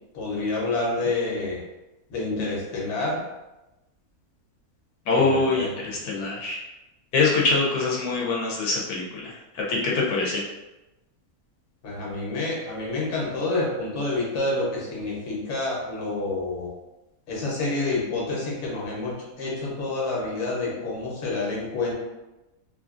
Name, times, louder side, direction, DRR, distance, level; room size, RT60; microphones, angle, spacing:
voice 1, 0.1-1.6 2.1-3.2 5.2-5.7 11.8-16.7 17.3-21.9, left 2 dB, 55° left, -4 dB, 1.1 m, -28 dB
voice 2, 5.1-6.6 7.1-10.4, left 3 dB, 85° left, -3 dB, 1.1 m, -24 dB
3.0 x 2.4 x 2.4 m, 1.0 s
omnidirectional pair, 1.6 m